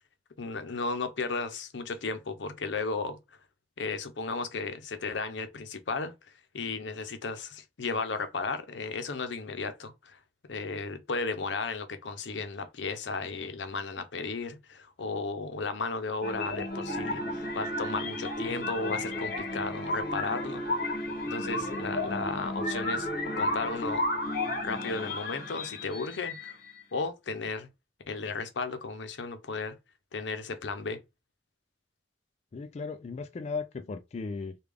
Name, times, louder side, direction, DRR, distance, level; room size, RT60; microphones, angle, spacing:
voice 1, 0.4-3.2 3.8-10.2 10.5-20.6 21.2-23.1 23.4-24.1 24.6-26.6 26.9-27.7 28.1-29.8 30.1-31.0, left 4 dB, 85° left, 0.6 m, -34 dB
sound 1, 16.2-26.8, left 1 dB, 55° left, 0.9 m, -33 dB
voice 2, 32.5-34.6, left 4 dB, 40° left, 0.3 m, -36 dB
3.3 x 2.3 x 3.4 m
head